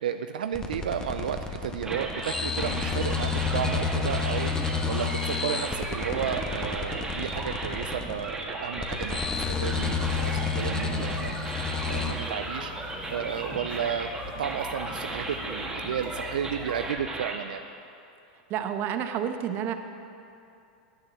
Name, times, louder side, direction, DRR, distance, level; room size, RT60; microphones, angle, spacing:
voice 1, 0.0-4.5 4.9-9.2 9.6-11.5 11.9-12.7 13.1-14.1 14.4-17.6, right 8 dB, 85° right, 8 dB, 0.4 m, -33 dB
sound 1, 0.5-12.1, left 5 dB, 15° left, 1.3 m, -30 dB
sound 2, 1.8-17.4, right 2 dB, 15° right, 1.8 m, -36 dB
sound 3, 9.2-16.9, left 3 dB, 30° left, 1.9 m, -43 dB
voice 2, 18.5-19.7, right 9 dB, 45° right, 8 dB, 1.0 m, -29 dB
10.5 x 8.9 x 7.2 m, 2.6 s
hypercardioid pair, 105°, 5 cm